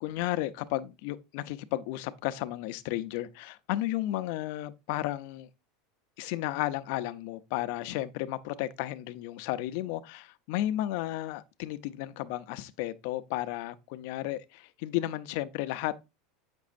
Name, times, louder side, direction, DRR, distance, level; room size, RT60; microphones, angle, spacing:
voice 1, 0.0-5.5 6.2-16.0, left 15 dB, 60° left, 0.6 m, -33 dB
8.4 x 6.0 x 2.5 m
supercardioid pair, 160°, 0 cm